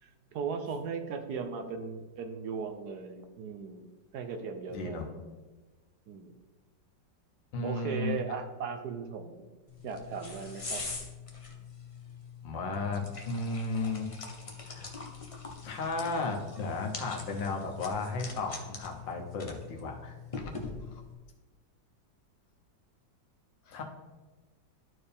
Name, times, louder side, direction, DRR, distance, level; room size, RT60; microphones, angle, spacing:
voice 1, 0.0-3.8 4.1-5.1 6.1-6.3 7.6-9.5 9.8-10.9, right 6 dB, 70° right, 7 dB, 1.1 m, -37 dB
voice 2, 4.7-5.4 7.5-8.2 12.4-14.3 14.6-14.9 15.6-20.5 20.9-21.0 23.7-23.8, left 3 dB, 85° left, 2 dB, 1.8 m, -34 dB
sound 1, 9.7-21.1, left 4 dB, 35° left, 0.5 m, -43 dB
12.0 x 4.5 x 3.4 m, 1.2 s
omnidirectional pair, 2.0 m